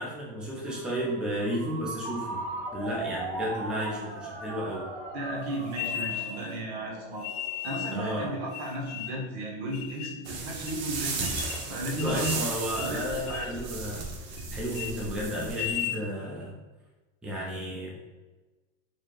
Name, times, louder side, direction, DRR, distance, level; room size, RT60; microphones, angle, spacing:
voice 1, 0.0-2.4 2.7-4.9 7.9-8.3 11.8-16.6 17.2-18.0, equal, 5° right, -5 dB, 0.6 m, -33 dB
Ringtone, 0.6-8.1, right 2 dB, 50° right, 1.1 m, -39 dB
voice 2, 5.1-7.3 7.6-12.4 12.8-13.5, right 1 dB, 65° right, -2 dB, 1.4 m, -35 dB
sound 1, 5.7-6.6 7.2-8.0 8.5-9.3 9.7-10.2 10.7-10.8 11.2-11.7 12.0-12.5 12.7-13.0 13.3-13.6 14.0-14.4 14.7-14.9 15.4-16.0, left 11 dB, 75° left, 0.6 m, -36 dB
sound 2, 10.2-15.9, right 4 dB, 90° right, 0.9 m, -35 dB
4.4 x 2.4 x 3.2 m, 1.2 s
supercardioid pair, 140°, 33 cm